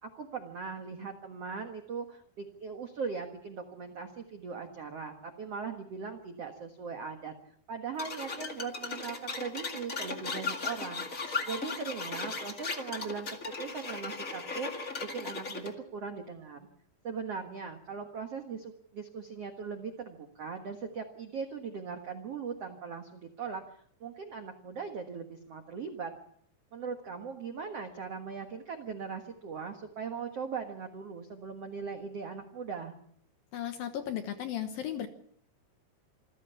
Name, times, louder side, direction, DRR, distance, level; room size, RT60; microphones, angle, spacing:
voice 1, 0.0-7.3 7.7-16.7 17.0-26.1 26.7-32.9, right 5 dB, 65° right, 5 dB, 1.5 m, -40 dB
sound 1, 8.0-15.7, left 4 dB, 80° left, 0.7 m, -37 dB
voice 2, 33.5-35.1, left 10 dB, 65° left, 7 dB, 2.4 m, -35 dB
27.0 x 15.0 x 7.0 m, 0.67 s
omnidirectional pair, 5.3 m